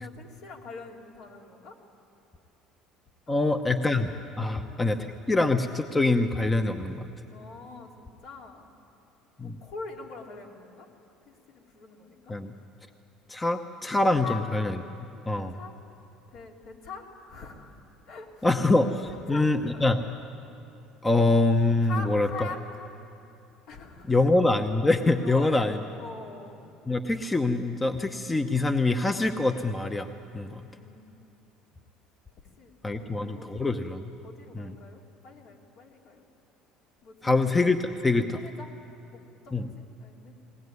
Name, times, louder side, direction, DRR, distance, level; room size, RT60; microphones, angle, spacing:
voice 1, 0.0-1.8 3.3-3.4 4.4-4.6 7.3-8.7 9.4-10.9 11.3-12.3 14.2-14.4 15.5-15.7 16.3-17.8 18.1-18.5 19.1-19.8 21.8-22.9 23.7-24.1 25.2-26.5 30.6-31.3 32.6-33.7 34.2-36.2 37.0-37.3 38.3-38.7 39.1-40.3, left 4 dB, 65° left, 0 dB, 3.2 m, -43 dB
voice 2, 3.3-4.1 4.4-7.1 9.4-9.6 12.3-12.5 13.3-14.8 15.3-15.6 18.4-20.0 21.0-22.5 24.1-25.8 26.9-30.6 32.8-34.1 34.5-34.8 37.2-38.4 39.5-39.7, left 2 dB, 15° left, 7 dB, 0.9 m, -25 dB
20.0 x 18.5 x 9.5 m, 2.8 s
supercardioid pair, 105°, 0 cm